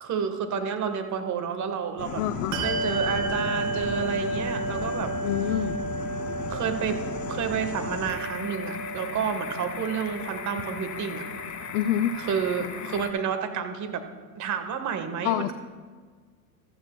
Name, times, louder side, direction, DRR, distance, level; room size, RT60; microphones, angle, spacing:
voice 1, 0.0-2.2 2.6-5.1 6.5-7.0 7.3-11.2 12.2-14.1 14.3-15.5, right 7 dB, 40° right, 8 dB, 1.4 m, -30 dB
sound 1, 2.0-13.1, left 6 dB, 40° left, 1.9 m, -36 dB
voice 2, 2.2-2.6 5.2-5.8 11.7-12.1 15.2-15.5, left 11 dB, 60° left, 8 dB, 0.6 m, -26 dB
Bell, 2.5-12.5, right 2 dB, 75° right, 2.3 m, -33 dB
14.5 x 14.5 x 2.3 m, 1.5 s
hypercardioid pair, 90°, 45 cm